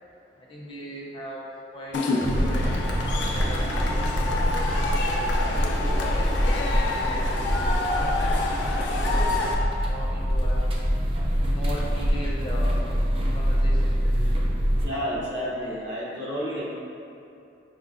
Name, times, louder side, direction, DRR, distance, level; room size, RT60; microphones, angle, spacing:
voice 1, 0.3-1.4 1.7-5.0 5.4-10.7 11.5-12.9 13.3-14.5 14.9-16.2, equal, 30° left, -5 dB, 0.5 m, -39 dB
Cheering / Crowd, 1.9-9.5, left 2 dB, 85° left, 0.4 m, -28 dB
sound 1, 2.2-14.9, equal, 30° right, 0.3 m, -25 dB
voice 2, 14.8-16.7, equal, 80° right, -9 dB, 1.0 m, -30 dB
5.1 x 2.2 x 2.4 m, 2.7 s
head